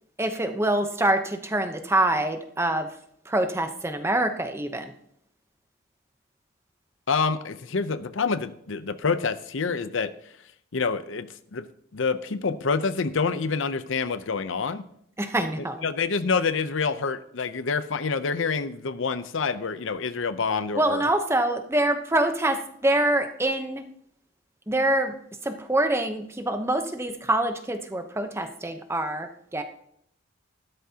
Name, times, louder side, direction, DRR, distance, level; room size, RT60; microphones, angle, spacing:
voice 1, 0.2-3.0 3.3-4.9 15.2-15.8 20.8-23.8 24.7-25.1 25.4-29.6, right 1 dB, 15° right, 7 dB, 0.8 m, -25 dB
voice 2, 7.1-10.1 10.7-11.7 11.9-14.8 15.8-21.0, left 5 dB, 70° left, 13 dB, 0.6 m, -27 dB
14.0 x 12.5 x 2.8 m, 0.70 s
head